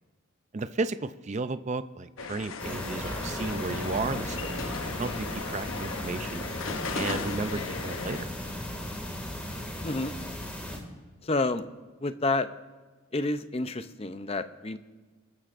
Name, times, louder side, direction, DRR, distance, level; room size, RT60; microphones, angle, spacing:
voice 1, 0.5-6.5 6.9-8.3, right 3 dB, 35° right, 12 dB, 0.4 m, -34 dB
sound 1, 2.2-8.2, left 4 dB, 75° left, 0.8 m, -37 dB
sound 2, 2.6-10.8, left 1 dB, 5° left, 2.1 m, -36 dB
voice 2, 11.2-11.6 12.0-12.5 13.1-14.8, left 2 dB, 30° left, 11 dB, 0.5 m, -29 dB
25.5 x 13.0 x 2.5 m, 1.4 s
head